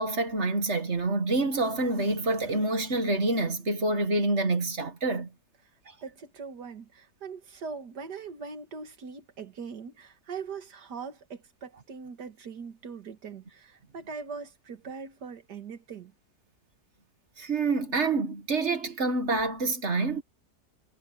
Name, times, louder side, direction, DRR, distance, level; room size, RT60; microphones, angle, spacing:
voice 1, 0.0-5.3 17.4-20.2, right 2 dB, 40° right, 2.0 m, -27 dB
voice 2, 6.0-16.1, right 5 dB, 75° right, 2.3 m, -41 dB
omnidirectional pair, 1.8 m